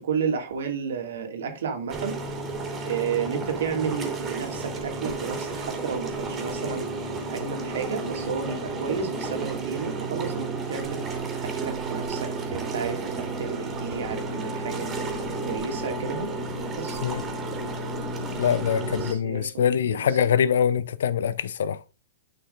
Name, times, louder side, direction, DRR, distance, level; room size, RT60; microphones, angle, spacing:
voice 1, 0.0-2.2 2.8-6.9 7.3-11.1 11.4-15.2 15.5-16.3 16.8-17.0 18.9-20.2, right 6 dB, 65° right, 1.9 m, -32 dB
sound 1, 1.9-19.1, right 3 dB, 25° right, 2.6 m, -32 dB
voice 2, 18.4-21.8, left 8 dB, 65° left, 0.5 m, -24 dB
11.0 x 5.8 x 2.5 m
figure-of-eight pair, 105°, 0 cm